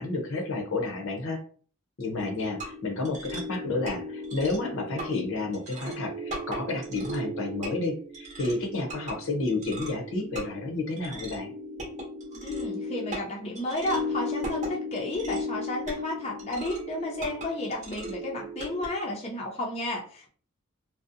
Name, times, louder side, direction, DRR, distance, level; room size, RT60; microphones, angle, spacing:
voice 1, 0.0-1.4 2.0-11.5, left 3 dB, 70° left, 2 dB, 0.7 m, -31 dB
sound 1, 2.2-18.9, left 1 dB, 35° right, 0.7 m, -36 dB
voice 2, 12.4-20.3, left 1 dB, 30° left, -2 dB, 0.5 m, -32 dB
2.6 x 2.0 x 2.5 m, 0.43 s
head